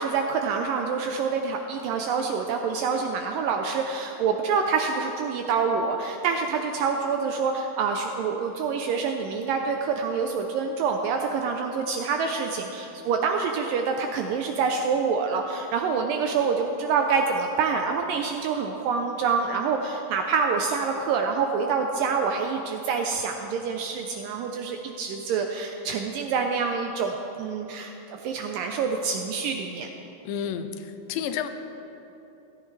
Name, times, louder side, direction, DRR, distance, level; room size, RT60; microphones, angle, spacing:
voice 1, 0.0-27.1 27.4-29.9, right 5 dB, 80° right, 4 dB, 2.0 m, -26 dB
voice 2, 30.2-31.5, left 8 dB, 80° left, 8 dB, 2.2 m, -31 dB
16.0 x 13.5 x 3.2 m, 2.9 s
omnidirectional pair, 4.4 m